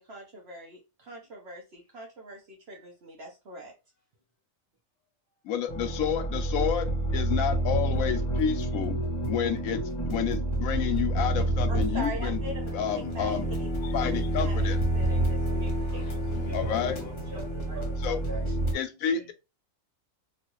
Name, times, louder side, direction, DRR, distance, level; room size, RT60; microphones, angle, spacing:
voice 1, 0.0-3.7 11.7-12.7 13.1-13.7 14.4-14.7 14.9-16.0 16.8-16.9 17.7-17.8, right 1 dB, 55° right, 1.0 m, -42 dB
voice 2, 5.4-9.0 9.3-9.8 10.1-12.4 12.7-13.5 13.8-14.8 15.8-16.9 18.0-18.2 18.7-19.3, left 9 dB, 80° left, 1.0 m, -30 dB
sound 1, 5.7-18.7, right 1 dB, 30° left, 0.6 m, -29 dB
voice 3, 16.4-19.3, right 2 dB, 15° right, 1.1 m, -44 dB
3.1 x 2.3 x 3.0 m
omnidirectional pair, 1.4 m